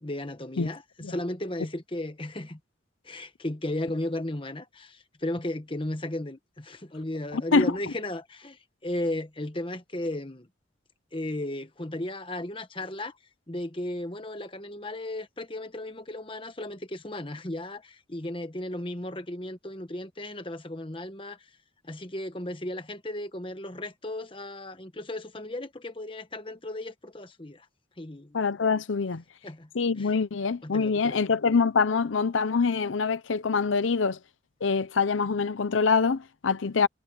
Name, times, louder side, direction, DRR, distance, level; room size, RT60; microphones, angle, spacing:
voice 1, 0.0-2.6 3.0-10.5 11.1-13.1 13.5-21.4 21.8-27.7 28.0-28.4 29.4-29.7 30.0-30.1 30.6-31.2, left 1 dB, 25° left, 1.3 m, -35 dB
voice 2, 7.3-7.7 28.3-29.2 29.7-34.2 34.6-36.9, left 5 dB, 80° left, 0.6 m, -25 dB
head